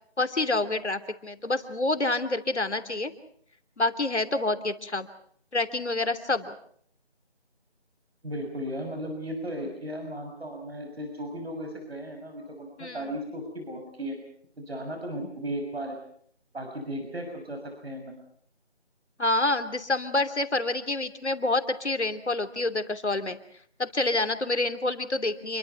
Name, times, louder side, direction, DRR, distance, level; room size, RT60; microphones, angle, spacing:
voice 1, 0.2-3.1 3.8-5.1 5.5-6.5 12.8-13.0 19.2-23.4 23.8-25.6, left 2 dB, 90° left, 9 dB, 3.1 m, -27 dB
voice 2, 8.2-14.2 14.6-16.0 16.5-18.1, equal, 65° right, 4 dB, 6.4 m, -35 dB
28.0 x 23.5 x 5.8 m, 0.63 s
figure-of-eight pair, 175°, 33 cm